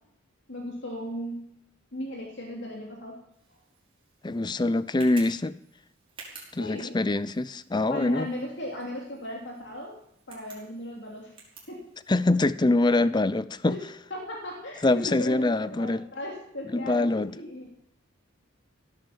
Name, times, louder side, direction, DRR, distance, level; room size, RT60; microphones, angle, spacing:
voice 1, 0.5-1.4 1.9-3.2 6.5-7.0 7.9-10.0 10.3-11.3 11.7-11.8 13.7-13.8 14.1-17.7, left 1 dB, 60° left, 2.9 m, -36 dB
Tick, 3.3-12.5, right 4 dB, 25° right, 5.1 m, -52 dB
voice 2, 4.2-5.6 6.5-8.3 12.1-13.8 14.8-16.0 16.7-17.3, left 2 dB, 20° left, 0.5 m, -24 dB
17.0 x 9.2 x 7.1 m
head